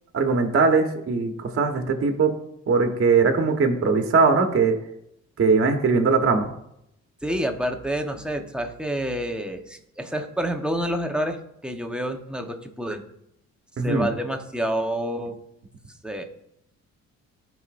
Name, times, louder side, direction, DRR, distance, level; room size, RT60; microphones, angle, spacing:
voice 1, 0.1-2.3 2.7-4.8 5.4-6.5 13.8-14.1, right 4 dB, 45° right, 4 dB, 1.3 m, -20 dB
voice 2, 7.2-13.0 13.8-15.4 16.0-16.2, right 1 dB, 5° right, 3 dB, 1.0 m, -28 dB
13.0 x 5.5 x 2.6 m, 0.78 s
cardioid pair, 90°, 30 cm